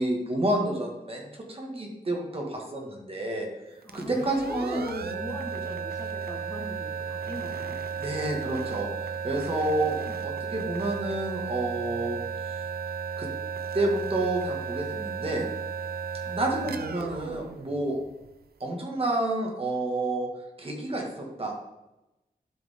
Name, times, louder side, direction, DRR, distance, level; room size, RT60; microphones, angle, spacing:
voice 1, 0.0-3.5 3.9-4.8 8.0-12.2 13.2-13.3 13.7-15.4 16.3-18.0 18.6-20.3 20.6-21.5, right 1 dB, 40° right, 0 dB, 1.8 m, -29 dB
voice 2, 3.8-7.8 9.5-10.2 16.2-16.8, left 1 dB, 20° left, -1 dB, 1.5 m, -41 dB
sound 1, 3.8-18.4, right 6 dB, 90° right, 0.7 m, -34 dB
12.0 x 5.0 x 3.7 m, 0.96 s
wide cardioid pair, 125°, 16 cm